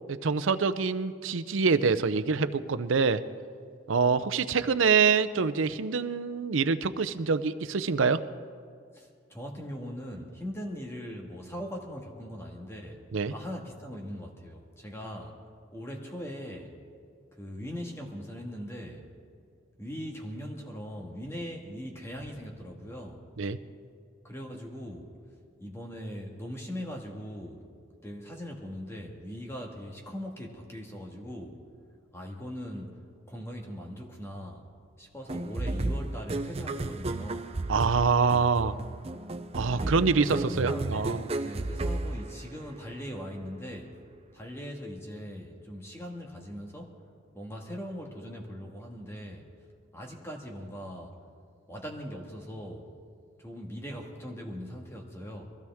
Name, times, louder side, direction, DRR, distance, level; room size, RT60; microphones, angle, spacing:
voice 1, 0.1-3.2 3.9-8.2 13.1-13.3 23.4-23.6 37.7-38.8 39.5-41.2, right 5 dB, 85° right, 12 dB, 0.6 m, -25 dB
voice 2, 8.9-13.0 13.3-15.4 15.7-16.8 17.3-19.0 19.8-23.2 24.2-25.2 25.6-27.7 28.0-31.6 32.1-33.0 33.2-34.7 35.0-37.5 39.7-44.0 44.3-49.5 49.9-51.2 51.7-52.9 53.4-55.5, equal, 15° left, 0 dB, 1.7 m, -40 dB
sound 1, 35.3-42.9, right 2 dB, 30° right, 0.5 m, -33 dB
22.5 x 15.5 x 3.6 m, 2.2 s
head